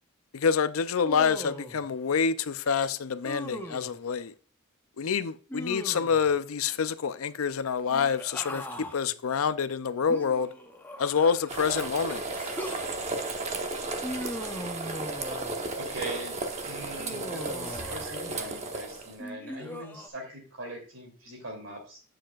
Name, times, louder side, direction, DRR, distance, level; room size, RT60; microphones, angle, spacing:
voice 1, 0.3-4.3 5.0-10.5 11.0-12.3, left 6 dB, 90° left, 0.5 m, -27 dB
Human voice, 1.0-1.8 3.2-3.9 5.5-6.3 7.9-9.0 10.1-11.6 12.3-12.9 14.0-15.6 17.0-18.2 19.2-20.1, equal, 10° left, 0.7 m, -39 dB
sound 1, 11.5-19.1, right 2 dB, 30° right, 1.0 m, -34 dB
voice 2, 15.8-22.0, right 1 dB, 70° right, 3.0 m, -41 dB
8.9 x 7.6 x 2.4 m
head